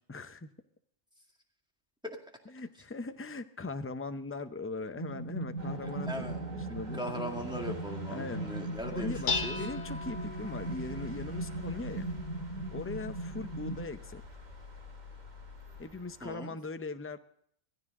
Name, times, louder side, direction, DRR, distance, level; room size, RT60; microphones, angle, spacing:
voice 1, 0.1-0.5 2.5-7.0 8.1-8.5 8.9-12.1 12.7-14.2 15.8-17.2, left 3 dB, 15° left, 9 dB, 0.5 m, -40 dB
sound 1, 5.0-13.9, right 2 dB, 45° left, 3.6 m, -39 dB
sound 2, 5.6-16.4, right 3 dB, 40° right, 1.6 m, -49 dB
voice 2, 5.8-6.5 6.9-9.7 16.2-16.6, equal, 5° right, 1 dB, 2.0 m, -39 dB
Dishes pots and pans, 8.8-15.8, left 4 dB, 75° left, 1.4 m, -41 dB
16.0 x 14.5 x 3.6 m, 0.68 s
omnidirectional pair, 1.2 m